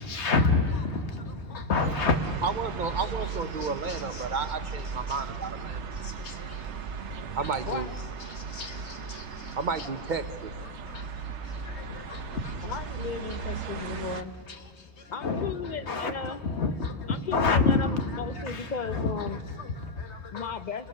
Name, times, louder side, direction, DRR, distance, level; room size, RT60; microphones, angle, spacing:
voice 1, 0.0-2.4 3.0-4.4 5.1-5.2 5.9-7.0 7.4-7.5 8.2-9.9 10.6-12.8 13.3-13.4 13.8-20.6, left 3 dB, 75° left, 1.6 m, -31 dB
sound 1, 1.8-14.2, right 5 dB, 90° right, 1.2 m, -37 dB
voice 2, 2.4-5.9 7.3-7.9 9.6-10.5, right 4 dB, 50° right, 0.8 m, -32 dB
voice 3, 6.5-6.8 7.7-8.0 11.4-11.5 11.9-12.1 12.6-16.4 17.1-17.9 18.2-19.4 20.3-20.9, left 5 dB, 50° left, 0.7 m, -36 dB
30.0 x 21.0 x 6.6 m
omnidirectional pair, 1.1 m